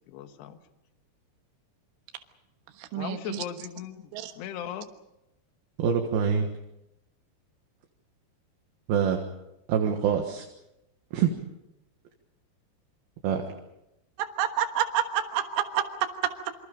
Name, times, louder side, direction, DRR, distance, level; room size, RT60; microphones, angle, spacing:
voice 1, 0.1-0.6 2.9-4.9, left 9 dB, 70° left, 8 dB, 3.2 m, -38 dB
voice 2, 2.8-3.4 4.1-4.3 14.2-16.5, right 10 dB, 85° right, 6 dB, 3.9 m, -29 dB
voice 3, 5.8-6.5 8.9-9.2 9.7-10.5 11.1-11.4 13.2-13.5, right 7 dB, 65° right, 3 dB, 2.9 m, -25 dB
28.0 x 25.5 x 5.2 m, 0.90 s
omnidirectional pair, 5.5 m